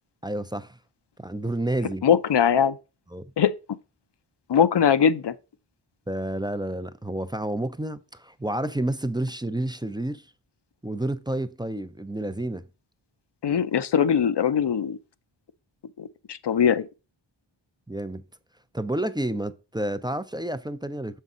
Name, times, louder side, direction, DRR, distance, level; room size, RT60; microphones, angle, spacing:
voice 1, 0.2-0.8 1.2-2.0 3.1-3.3 6.1-10.3 10.8-12.7 17.9-18.2 18.7-21.2, right 1 dB, 10° right, 0.5 m, -30 dB
voice 2, 2.0-2.8 3.4-3.5 4.5-5.3 13.4-15.0 16.0-16.9, left 8 dB, 60° left, 0.7 m, -21 dB
7.2 x 5.6 x 3.8 m
wide cardioid pair, 75°, 48 cm